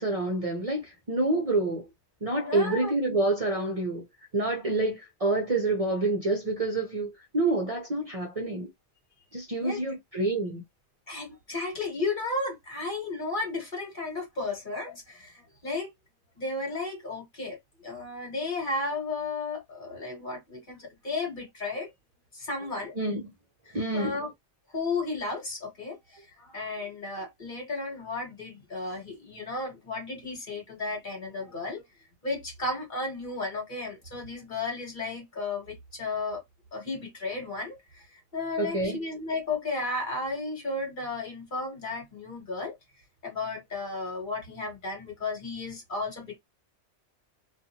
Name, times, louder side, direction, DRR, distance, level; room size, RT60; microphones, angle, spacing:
voice 1, 0.0-1.9 2.2-4.1 4.3-8.7 9.3-10.6 23.0-23.3 23.7-24.2 38.6-39.0, right 2 dB, 40° right, 0.6 m, -28 dB
voice 2, 2.4-2.9 9.5-9.8 11.1-15.9 16.3-17.6 17.8-21.9 22.3-22.9 23.7-24.3 24.7-31.8 32.2-36.4 36.7-42.8 43.2-46.4, left 3 dB, 45° left, 1.4 m, -34 dB
2.6 x 2.4 x 2.8 m
omnidirectional pair, 1.2 m